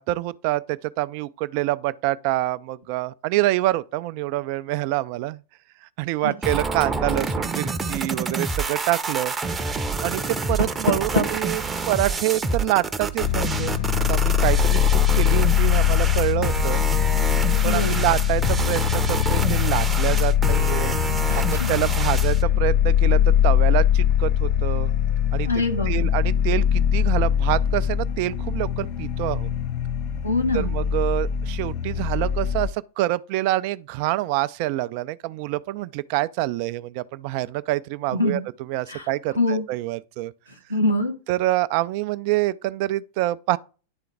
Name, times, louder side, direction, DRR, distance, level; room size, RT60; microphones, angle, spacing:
voice 1, 0.0-5.4 6.0-9.3 10.0-13.8 14.1-16.8 17.6-21.0 21.3-24.9 25.3-25.5 25.9-29.5 30.5-40.3 41.3-43.6, right 17 dB, 45° right, 0.4 m, -26 dB
sound 1, 6.4-22.4, right 4 dB, 15° right, 0.7 m, -28 dB
Door, 10.3-11.5, left 3 dB, 60° left, 1.4 m, -26 dB
sound 2, 13.2-32.7, left 10 dB, 40° left, 0.6 m, -22 dB
voice 2, 17.6-18.1 21.3-21.7 25.4-26.1 30.2-30.8 38.1-38.4 38.9-39.1 39.3-39.7 40.7-41.2, left 2 dB, 85° left, 1.6 m, -24 dB
10.5 x 3.8 x 3.4 m
figure-of-eight pair, 90°, 0 cm